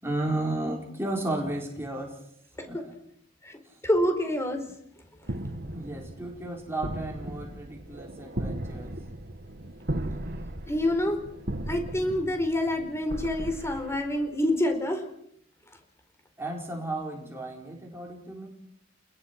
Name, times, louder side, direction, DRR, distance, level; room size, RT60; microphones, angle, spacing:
voice 1, 0.0-2.2 2.7-2.9 3.6-3.8 5.6-8.9 16.4-18.5, right 1 dB, 10° right, -1 dB, 4.7 m, -33 dB
voice 2, 3.8-4.6 10.7-11.2 11.7-15.1, left 1 dB, 15° left, 6 dB, 4.3 m, -27 dB
sound 1, 5.2-14.5, right 1 dB, 50° right, 1.9 m, -37 dB
29.0 x 21.0 x 6.0 m, 0.74 s
head